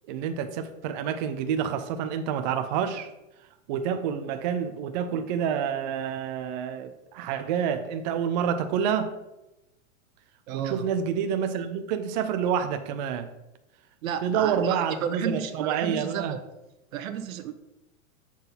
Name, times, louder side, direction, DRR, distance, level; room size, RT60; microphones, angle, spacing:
voice 1, 0.1-3.1 3.7-9.2 10.5-13.3 14.2-16.4, right 8 dB, 35° right, 9 dB, 0.4 m, -28 dB
voice 2, 10.5-10.9 14.0-16.2 16.9-17.5, right 8 dB, 75° right, 11 dB, 0.9 m, -32 dB
7.3 x 4.0 x 5.5 m, 0.96 s
supercardioid pair, 150°, 41 cm